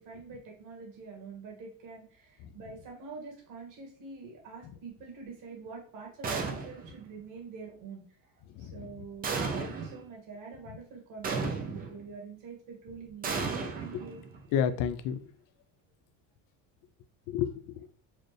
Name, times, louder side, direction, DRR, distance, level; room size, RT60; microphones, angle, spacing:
voice 1, 0.0-14.3, right 4 dB, 55° right, 0 dB, 1.6 m, -46 dB
sound 1, 6.2-7.0 9.2-10.0 11.2-12.0 13.2-14.5, right 4 dB, 25° right, 0.5 m, -34 dB
voice 2, 8.5-9.0 13.9-14.0 14.5-15.3 17.3-17.9, left 8 dB, 55° left, 11 dB, 0.5 m, -31 dB
4.2 x 2.5 x 3.2 m, 0.44 s
cardioid pair, 140°, 39 cm